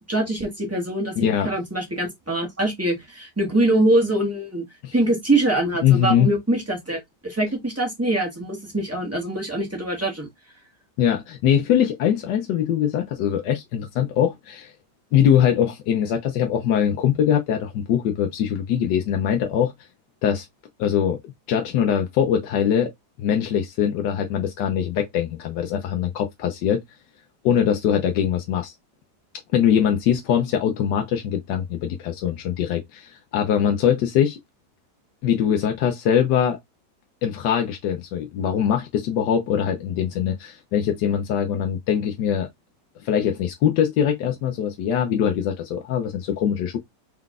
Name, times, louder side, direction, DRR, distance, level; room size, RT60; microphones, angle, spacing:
voice 1, 0.1-4.6 4.9-10.3, right 1 dB, 10° right, 1.3 m, -23 dB
voice 2, 1.2-1.5 4.8-4.9 5.8-6.3 11.0-14.7 15.1-19.7 20.2-20.5 20.8-22.9 23.2-26.8 27.4-28.7 29.5-34.4 35.2-36.6 37.2-42.5 43.0-46.8, left 9 dB, 85° left, 1.3 m, -22 dB
4.5 x 3.8 x 2.4 m
omnidirectional pair, 1.8 m